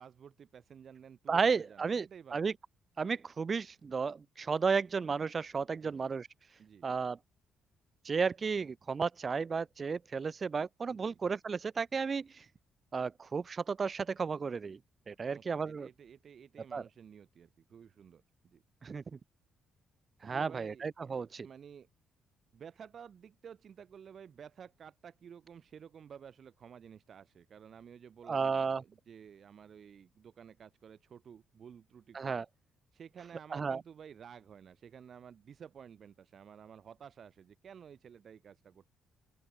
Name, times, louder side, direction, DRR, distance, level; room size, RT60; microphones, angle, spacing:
voice 1, 0.0-2.5 5.8-6.1 6.6-6.9 10.9-11.2 15.2-18.6 20.2-21.1 21.4-21.9 22.5-32.4 32.9-38.9, right 7 dB, 55° right, 5.1 m, -53 dB
voice 2, 1.3-2.5 3.0-6.3 6.8-7.2 8.0-12.3 12.9-14.8 15.1-15.9 16.7-16.8 18.8-19.0 20.2-21.5 28.3-28.8 32.1-32.4 33.5-33.8, right 5 dB, 40° right, 2.7 m, -33 dB
open air
cardioid pair, 90°, 0 cm